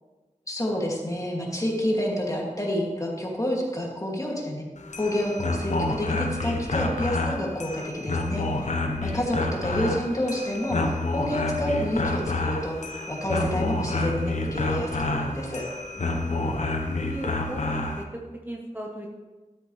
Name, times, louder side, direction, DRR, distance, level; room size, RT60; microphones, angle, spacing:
voice 1, 0.5-4.6 5.0-8.7 9.0-12.8 13.1-15.6, equal, 25° left, -2 dB, 2.4 m, -29 dB
sound 1, 4.8-18.0, left 2 dB, 65° left, 1.0 m, -28 dB
voice 2, 16.0-16.6 16.9-19.1, right 1 dB, 15° right, -1 dB, 1.1 m, -38 dB
13.0 x 8.0 x 3.3 m, 1.3 s
wide cardioid pair, 65°, 13 cm